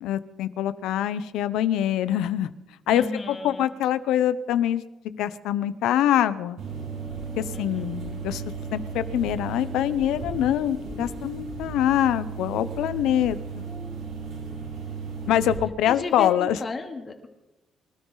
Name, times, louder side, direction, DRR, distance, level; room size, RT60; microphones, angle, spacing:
voice 1, 0.0-2.5 2.9-6.6 7.4-8.4 8.7-13.6 15.3-16.6, left 11 dB, 90° left, 14 dB, 0.9 m, -24 dB
voice 2, 2.9-3.7 7.5-8.0 15.8-17.3, left 3 dB, 35° left, 3 dB, 3.1 m, -34 dB
sound 1, 6.6-15.6, right 4 dB, 85° right, 7.9 m, -35 dB
25.5 x 13.0 x 4.1 m, 0.97 s
cardioid pair, 90°, 0 cm